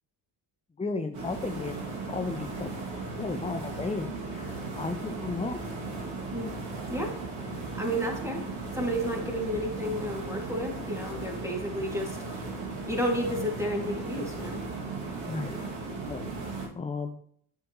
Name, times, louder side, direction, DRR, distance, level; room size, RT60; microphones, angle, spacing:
voice 1, 0.8-2.8 3.2-5.6 15.3-15.6 16.1-16.3 16.8-17.2, left 4 dB, 15° left, 6 dB, 0.5 m, -34 dB
sound 1, 1.1-16.7, right 3 dB, 65° right, 2.3 m, -36 dB
voice 2, 7.7-8.4 8.7-12.4 12.9-14.6, equal, 5° right, 0 dB, 2.2 m, -31 dB
8.3 x 7.2 x 3.0 m, 0.63 s
cardioid pair, 80°, 50 cm